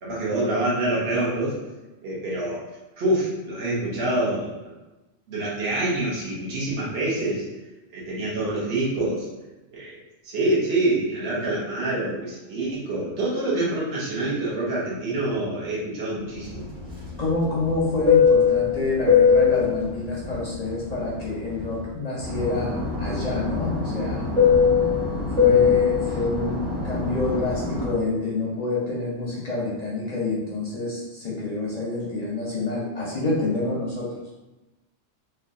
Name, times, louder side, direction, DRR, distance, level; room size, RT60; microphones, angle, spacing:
voice 1, 0.0-1.6 2.0-2.6 3.0-4.6 5.3-7.4 7.9-9.3 9.7-10.0 10.2-16.6, right 2 dB, 55° right, -7 dB, 1.1 m, -26 dB
Fixed-wing aircraft airplane, 16.5-21.8 22.2-28.0, left 6 dB, 90° right, 1.6 m, -21 dB
voice 2, 17.2-24.2 25.4-34.2, left 2 dB, 45° left, -5 dB, 0.6 m, -27 dB
3.3 x 2.3 x 2.6 m, 1.1 s
omnidirectional pair, 1.3 m